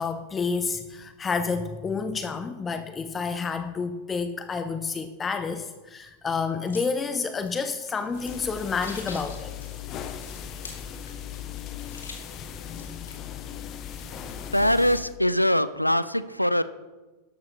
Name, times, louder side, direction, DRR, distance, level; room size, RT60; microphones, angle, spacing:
voice 1, 0.0-9.5 12.4-13.0, left 5 dB, 20° left, 10 dB, 0.7 m, -30 dB
sound 1, 6.6-13.3 13.6-14.0, left 4 dB, 70° left, 2.5 m, -46 dB
sound 2, 8.1-15.1, left 9 dB, 35° left, 1.0 m, -38 dB
voice 2, 14.5-16.6, equal, 90° left, 15 dB, 0.5 m, -22 dB
13.5 x 12.0 x 3.3 m, 1.2 s
figure-of-eight pair, 90°, 0 cm